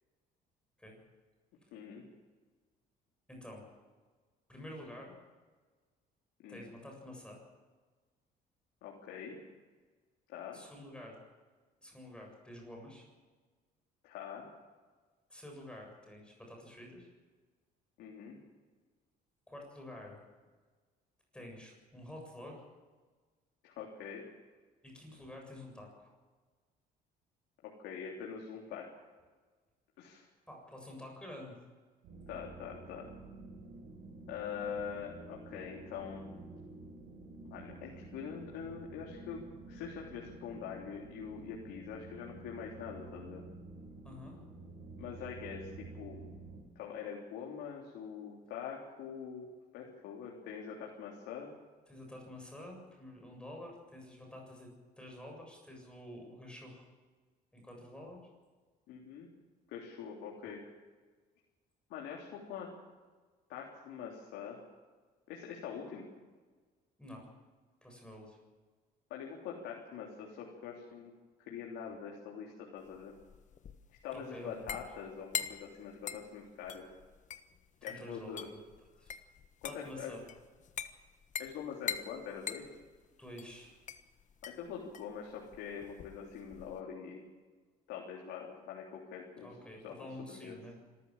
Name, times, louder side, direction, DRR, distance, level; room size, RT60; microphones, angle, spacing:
voice 1, 1.7-2.0 6.4-6.6 8.8-9.4 10.3-10.6 14.0-14.5 18.0-18.4 23.6-24.2 27.6-29.0 30.0-30.3 32.3-33.1 34.3-36.2 37.5-39.4 39.7-43.4 45.0-46.2 46.8-49.5 49.7-51.5 58.9-59.3 59.7-60.6 61.9-62.7 63.5-64.6 65.3-66.1 69.1-71.1 71.4-73.1 74.0-76.8 77.8-78.5 79.6-80.1 81.4-82.7 84.4-87.2 87.9-89.5 89.8-90.6, left 7 dB, 90° left, -2 dB, 3.6 m, -44 dB
voice 2, 3.3-3.7 4.5-5.1 6.5-7.4 10.5-11.2 11.8-13.0 15.3-17.1 19.5-20.2 21.3-22.6 24.8-26.1 30.5-31.6 44.0-44.4 51.9-54.7 55.0-56.9 57.5-58.2 67.0-67.3 67.8-68.4 74.1-74.8 77.8-78.6 79.0-79.1 79.6-80.2 80.8-80.9 83.2-83.8 89.4-90.8, left 1 dB, 5° left, 0 dB, 7.5 m, -49 dB
sound 1, 32.0-46.6, right 2 dB, 80° right, 4.3 m, -50 dB
sound 2, 72.8-86.8, left 7 dB, 45° left, 1.4 m, -44 dB
26.0 x 14.0 x 7.5 m, 1.4 s
cardioid pair, 110°, 17 cm